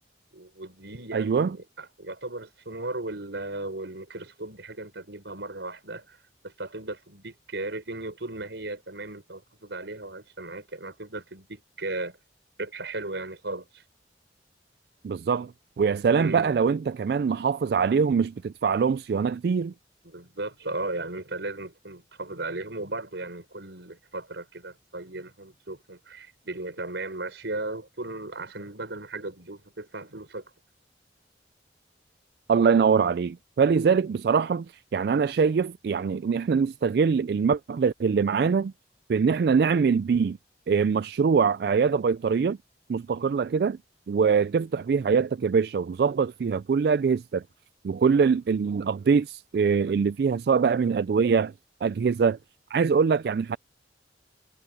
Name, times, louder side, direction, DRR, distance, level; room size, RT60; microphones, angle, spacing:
voice 1, 0.3-6.2 6.4-12.2 12.6-13.8 16.2-16.5 20.0-30.5, right 2 dB, 90° right, 4.9 m, -36 dB
voice 2, 1.1-1.6 15.0-15.5 15.8-19.7 32.5-34.7 34.9-38.7 39.1-40.4 40.7-42.6 42.9-43.8 44.1-47.4 47.8-51.5 51.8-52.4 52.7-53.6, right 5 dB, 60° right, 0.3 m, -23 dB
head